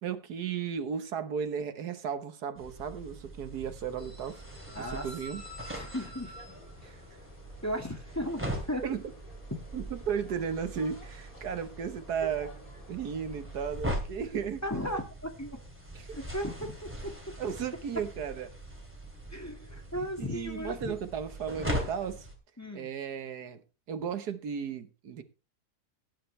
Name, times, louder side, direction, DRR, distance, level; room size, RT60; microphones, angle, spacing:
voice 1, 0.0-4.4 4.8-5.4 6.8-7.0 8.8-9.0 9.7-12.5 12.9-14.6 15.9-16.2 17.4-18.5 20.2-22.3 22.7-23.6 23.9-25.2, right 7 dB, 80° right, 1.7 m, -35 dB
sound 1, 2.5-22.3, equal, 5° right, 2.8 m, -41 dB
sound 2, 4.0-13.6, left 2 dB, 60° left, 3.3 m, -51 dB
voice 2, 4.7-5.1 5.8-7.3 7.6-8.8 14.6-15.6 16.1-17.1 19.3-21.0 21.8-21.9 22.6-22.9, equal, 10° left, 1.8 m, -36 dB
17.0 x 10.0 x 3.2 m
omnidirectional pair, 1.7 m